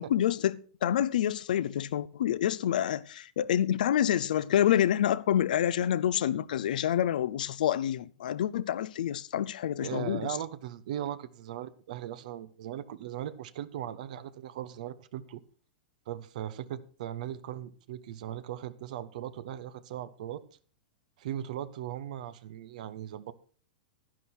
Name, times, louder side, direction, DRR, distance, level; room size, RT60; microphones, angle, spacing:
voice 1, 0.0-10.4, left 10 dB, 70° left, 0.6 m, -27 dB
voice 2, 9.8-15.4 16.1-20.4 21.2-23.3, right 11 dB, 65° right, 1.0 m, -38 dB
11.0 x 10.5 x 4.4 m
hypercardioid pair, 110°, 5 cm